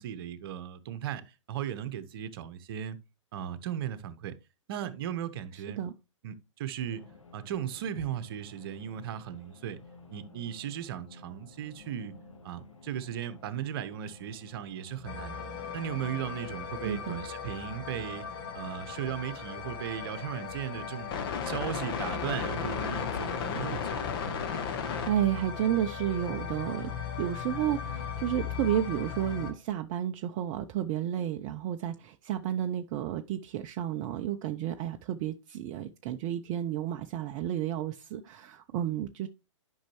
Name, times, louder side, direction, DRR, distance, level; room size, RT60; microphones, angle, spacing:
voice 1, 0.0-3.0 3.3-4.3 4.7-5.8 6.2-7.0 7.3-9.8 10.1-12.1 12.4-15.4 15.7-18.3 18.5-21.1 21.4-24.1, right 10 dB, 50° right, 0.9 m, -37 dB
sound 1, 6.8-23.4, left 3 dB, 80° left, 1.4 m, -53 dB
sound 2, 15.0-29.5, left 6 dB, 50° left, 1.3 m, -36 dB
voice 2, 16.8-17.3 24.9-26.9 27.2-39.3, right 11 dB, 30° right, 0.5 m, -31 dB
10.0 x 5.5 x 3.0 m
figure-of-eight pair, 120°, 16 cm